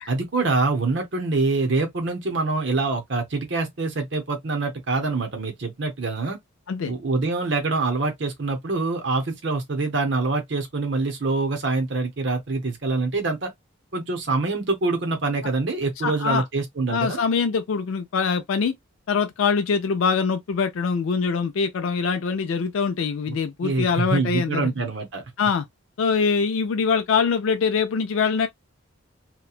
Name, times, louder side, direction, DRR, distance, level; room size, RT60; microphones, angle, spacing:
voice 1, 0.1-6.4 6.9-13.5 13.9-17.2 23.3-23.4 23.6-25.2, right 3 dB, 55° right, 0.8 m, -25 dB
voice 2, 16.0-16.4 16.9-18.7 19.1-24.7 25.4-25.7 26.0-28.5, left 5 dB, 75° left, 0.4 m, -23 dB
2.9 x 2.2 x 2.3 m
head